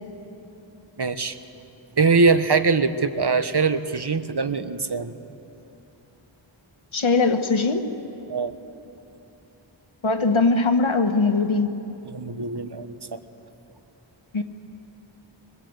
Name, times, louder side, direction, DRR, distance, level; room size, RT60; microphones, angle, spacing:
voice 1, 1.0-1.4 2.0-5.1 8.3-8.5 12.0-13.2, right 4 dB, 55° right, 10 dB, 1.2 m, -22 dB
voice 2, 6.9-7.9 10.0-11.7 14.3-14.4, left 3 dB, 80° left, 5 dB, 1.6 m, -20 dB
25.5 x 25.5 x 8.2 m, 2.9 s
wide cardioid pair, 45°, 48 cm